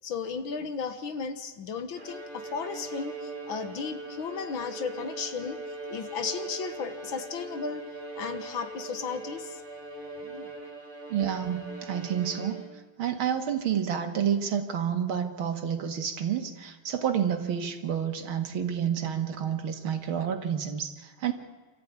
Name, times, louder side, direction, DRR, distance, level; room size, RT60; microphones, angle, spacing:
voice 1, 0.0-5.6 5.9-7.8 8.2-9.6 10.2-10.5, left 5 dB, 75° left, 9 dB, 2.3 m, -35 dB
Bowed string instrument, 1.9-13.0, right 2 dB, 40° right, 4.4 m, -40 dB
voice 2, 11.1-12.6 13.0-21.3, right 8 dB, 80° right, 5 dB, 2.6 m, -29 dB
26.5 x 14.0 x 9.6 m, 1.3 s
omnidirectional pair, 2.2 m